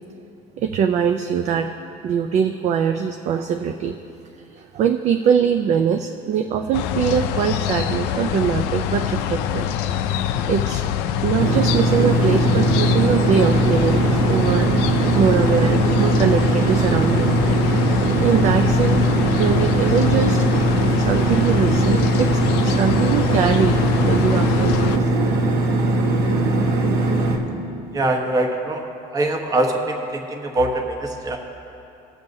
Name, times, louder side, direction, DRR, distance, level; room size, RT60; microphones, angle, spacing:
voice 1, 0.6-1.7 2.0-4.0 4.5-9.7 10.5-10.8 11.2-14.7 15.1-17.3 18.2-19.1 19.4-20.5 20.8-24.9, right 7 dB, 40° right, 6 dB, 0.4 m, -22 dB
sound 1, 6.7-25.0, left 9 dB, 65° left, 0.5 m, -24 dB
sound 2, 11.4-27.4, right 2 dB, 55° right, 1.2 m, -20 dB
voice 2, 27.9-28.8 29.1-31.4, right 1 dB, 20° right, 2 dB, 1.1 m, -23 dB
19.5 x 7.2 x 2.7 m, 2.7 s
cardioid pair, 150°, 18 cm